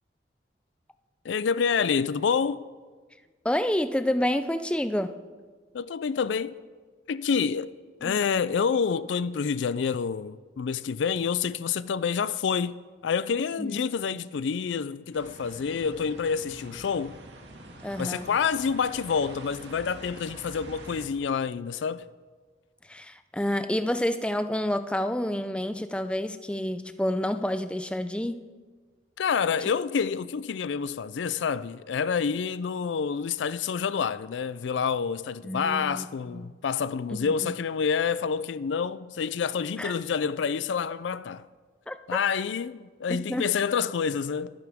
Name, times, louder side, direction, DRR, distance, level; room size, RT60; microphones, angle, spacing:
voice 1, 1.2-2.6 5.7-6.6 7.1-7.7 8.0-12.7 13.0-17.2 18.0-22.1 29.2-41.5 42.1-44.5, left 6 dB, 80° left, 0.4 m, -28 dB
voice 2, 3.4-5.1 8.0-8.2 13.6-13.8 17.8-18.3 22.9-28.4 35.4-36.1 36.3-36.5 37.1-37.5 39.8-39.9 41.9-42.0 43.1-43.5, left 1 dB, 5° left, 0.5 m, -29 dB
sound 1, 15.1-21.1, right 1 dB, 75° right, 2.0 m, -45 dB
25.0 x 10.5 x 3.6 m
head